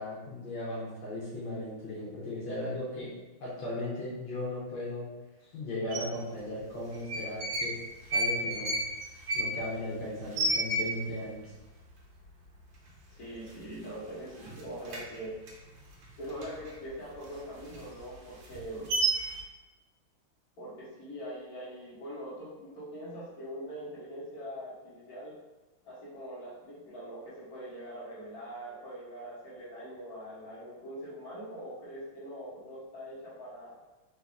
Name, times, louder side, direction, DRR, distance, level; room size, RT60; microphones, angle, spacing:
voice 1, 0.0-3.1 3.4-5.1 5.5-7.7 8.1-8.8 9.3-11.5, left 1 dB, 70° left, -8 dB, 1.7 m, -37 dB
sound 1, 5.9-6.0 6.9-7.7 8.0-11.3 11.6-11.7 11.9-12.4 12.9-13.0 13.3-14.1 14.4-16.7 17.1-19.4, right 2 dB, 70° right, 1.5 m, -32 dB
voice 2, 13.2-15.3 16.2-18.9 20.6-25.3 25.8-33.7, equal, 50° left, -8 dB, 1.8 m, -42 dB
4.1 x 2.8 x 3.5 m, 1.1 s
omnidirectional pair, 2.3 m